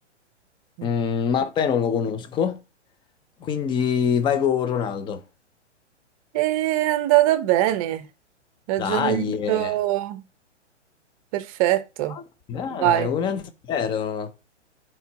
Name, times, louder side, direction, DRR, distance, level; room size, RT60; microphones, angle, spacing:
voice 1, 0.8-2.6 3.4-5.2 8.8-9.8 12.5-14.3, left 7 dB, 15° left, 0.7 m, -25 dB
voice 2, 6.3-8.1 8.7-10.2 11.3-12.2 12.7-13.1, right 14 dB, 30° right, 0.8 m, -22 dB
9.3 x 4.6 x 2.9 m
figure-of-eight pair, 120°, 35 cm